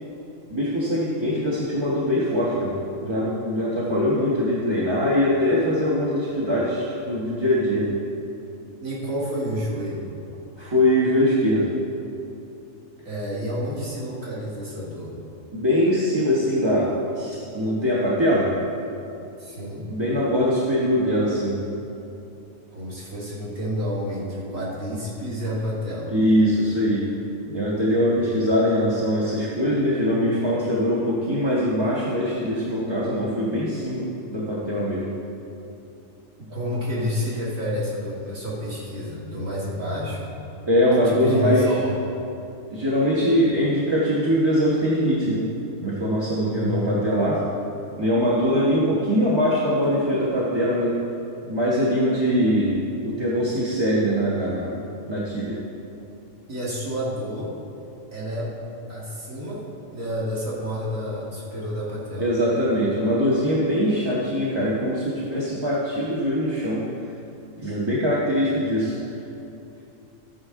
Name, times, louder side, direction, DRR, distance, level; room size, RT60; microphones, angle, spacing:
voice 1, 0.5-2.7 3.0-7.9 10.6-11.7 15.5-18.5 19.9-21.6 26.1-27.1 27.5-35.1 40.7-41.7 42.7-45.5 45.8-47.4 48.0-51.0 51.5-52.7 53.0-54.7 55.1-55.6 62.2-66.8 67.6-69.0, equal, 20° right, -7 dB, 1.1 m, -22 dB
voice 2, 8.8-10.0 13.0-15.1 19.4-19.9 22.7-26.1 36.4-40.3 41.0-41.9 46.4-46.9 56.5-57.5 58.1-58.5 58.9-59.6 59.9-62.3, equal, 75° right, -6 dB, 2.3 m, -29 dB
12.5 x 9.4 x 3.7 m, 2.8 s
omnidirectional pair, 1.4 m